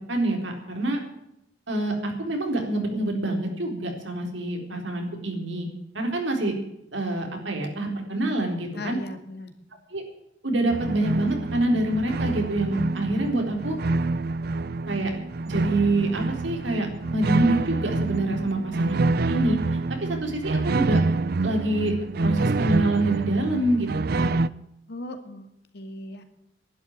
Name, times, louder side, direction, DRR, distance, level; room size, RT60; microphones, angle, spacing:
voice 1, 0.1-1.0 1.7-5.7 5.9-6.5 6.9-9.0 9.9-10.0 10.4-13.8 14.9-15.1 15.5-19.6 20.0-21.0 21.4-24.3, right 2 dB, 80° right, 2 dB, 3.9 m, -26 dB
voice 2, 8.7-9.5 24.9-25.5 25.7-26.2, left 1 dB, 60° left, 6 dB, 2.2 m, -37 dB
sound 1, 10.7-24.5, right 3 dB, 55° right, 0.5 m, -27 dB
11.5 x 11.5 x 8.8 m, 0.83 s
head